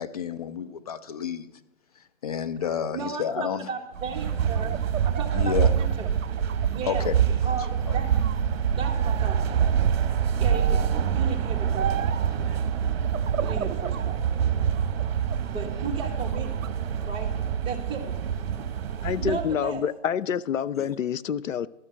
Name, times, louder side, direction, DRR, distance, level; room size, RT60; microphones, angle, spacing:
voice 1, 0.0-1.5 2.2-3.7 5.4-5.7 6.8-7.2 20.8-20.9, left 8 dB, 30° left, 0.4 m, -30 dB
voice 2, 2.9-4.7 5.0-6.1 6.7-8.2 8.7-9.6 10.4-12.1 13.4-14.2 15.5-16.6 17.0-17.3 17.6-18.2 19.0-19.8, right 5 dB, 15° right, 1.2 m, -35 dB
sound 1, 3.9-19.7, right 8 dB, 55° right, 1.0 m, -26 dB
sound 2, 4.0-7.2 7.6-8.4 8.8-9.5 10.5-11.0 11.8-12.3 13.0-14.1 14.6-15.5 16.0-16.7, right 8 dB, 85° right, 0.6 m, -36 dB
voice 3, 19.0-21.7, left 8 dB, 85° left, 0.6 m, -27 dB
12.0 x 5.2 x 7.4 m
hypercardioid pair, 135°, 38 cm